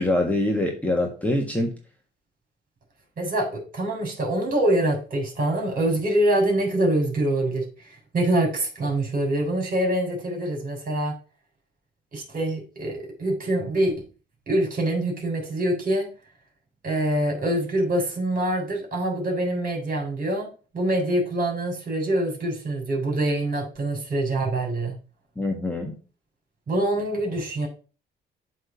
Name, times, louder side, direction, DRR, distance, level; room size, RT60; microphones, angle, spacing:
voice 1, 0.0-1.7 25.4-25.9, left 1 dB, 5° left, 1 dB, 1.5 m, -24 dB
voice 2, 3.2-11.2 12.1-13.9 14.5-16.1 16.8-20.5 20.7-25.0 26.7-27.7, right 1 dB, 45° right, 1 dB, 3.6 m, -25 dB
7.6 x 3.5 x 5.7 m, 0.35 s
cardioid pair, 90°, 20 cm